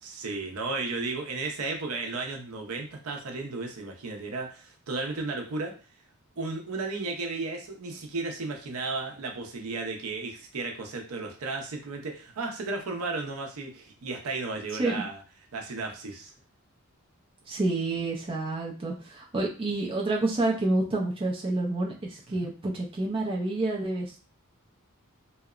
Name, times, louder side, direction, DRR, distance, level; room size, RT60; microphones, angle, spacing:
voice 1, 0.0-5.7 6.4-15.2 15.5-16.3 22.4-22.5, right 3 dB, 70° right, 2 dB, 0.6 m, -34 dB
voice 2, 17.5-24.2, right 2 dB, 25° right, -2 dB, 0.4 m, -28 dB
2.8 x 2.0 x 2.3 m, 0.35 s
head